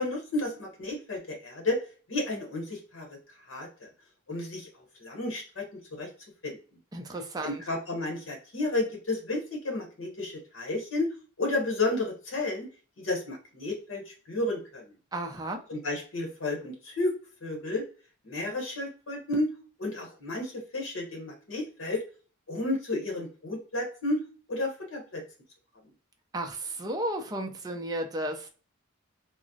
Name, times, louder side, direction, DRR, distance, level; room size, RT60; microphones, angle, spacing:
voice 1, 0.0-1.8 2.1-3.2 3.5-3.9 4.3-4.7 5.0-6.1 6.4-6.6 7.4-11.1 11.4-12.7 13.0-14.8 15.7-17.1 17.4-17.8 18.2-19.5 19.8-22.0 22.5-24.2 24.5-25.2, left 2 dB, 70° left, 0.9 m, -32 dB
voice 2, 6.9-7.6 15.1-15.6 26.3-28.5, right 1 dB, 20° right, 0.4 m, -33 dB
3.5 x 2.0 x 2.6 m
head